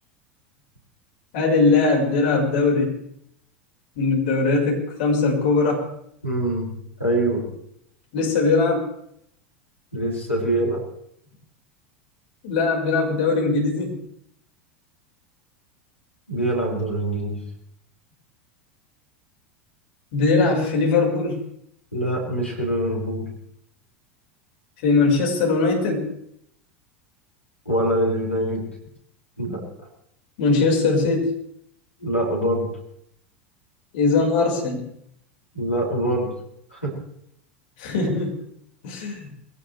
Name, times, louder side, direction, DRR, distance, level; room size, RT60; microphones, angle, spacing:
voice 1, 1.3-2.9 4.0-5.9 8.1-8.9 12.4-13.9 20.1-21.4 24.8-26.1 30.4-31.3 33.9-34.8 37.8-38.3 38.8-39.3, left 3 dB, 55° left, 0 dB, 5.4 m, -20 dB
voice 2, 6.2-6.7 7.0-7.4 9.9-10.8 16.3-17.4 21.9-23.3 27.6-28.6 29.4-29.6 32.0-32.7 35.5-36.3 36.7-36.9, right 1 dB, 85° left, -2 dB, 6.3 m, -24 dB
22.0 x 18.0 x 3.4 m, 0.73 s
figure-of-eight pair, 80°, 7 cm